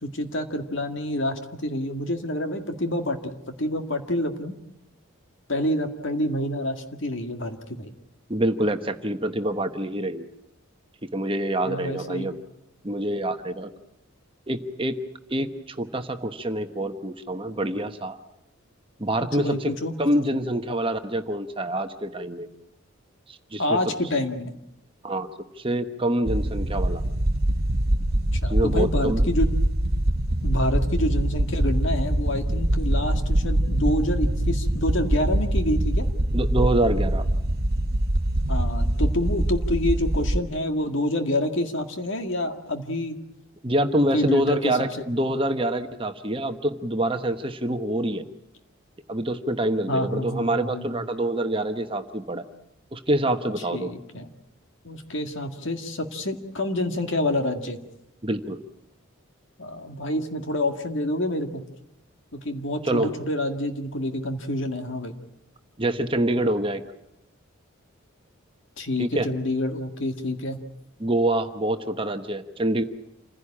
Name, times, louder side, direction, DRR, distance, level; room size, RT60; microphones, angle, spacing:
voice 1, 0.0-4.5 5.5-7.9 11.6-12.3 19.2-19.9 23.6-24.5 28.3-29.5 30.4-36.0 38.5-43.2 44.1-45.0 49.9-51.1 53.7-54.3 54.8-57.8 59.6-61.6 62.3-65.2 68.8-70.6, left 1 dB, 60° left, 6 dB, 2.0 m, -28 dB
voice 2, 8.3-10.3 11.0-12.3 12.8-13.7 14.5-15.0 15.3-18.2 19.0-22.5 23.3-23.8 25.0-25.3 25.6-27.0 28.5-29.2 36.3-37.2 43.6-48.2 49.1-52.4 52.9-53.9 58.2-58.6 62.8-63.1 65.8-66.8 69.0-69.3 71.0-72.8, right 1 dB, 25° right, 7 dB, 1.1 m, -26 dB
sound 1, 26.2-40.4, right 1 dB, 50° right, 1.1 m, -24 dB
27.5 x 16.0 x 8.7 m, 0.86 s
head